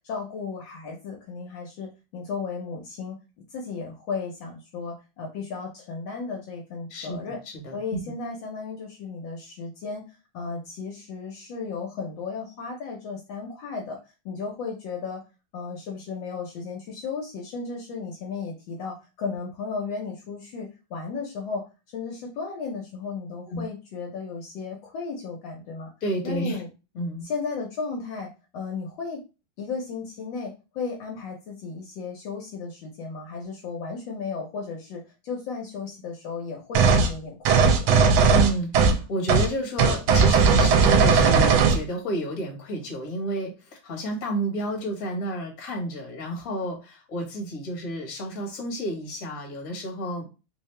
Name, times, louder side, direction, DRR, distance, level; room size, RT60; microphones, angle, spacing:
voice 1, 0.0-3.2 3.5-7.4 7.7-14.0 14.2-15.2 15.5-25.9 26.2-26.7 27.2-29.2 29.6-37.9, left 4 dB, 70° left, 1 dB, 1.4 m, -34 dB
voice 2, 7.4-8.0 23.5-23.7 26.0-26.6 26.9-27.3 38.3-50.3, right 1 dB, 50° left, 1 dB, 1.5 m, -30 dB
sound 1, 36.7-37.1 37.4-39.0 39.3-39.5 39.8-41.8, right 5 dB, 85° right, 1.4 m, -18 dB
3.4 x 2.7 x 3.2 m, 0.30 s
omnidirectional pair, 2.2 m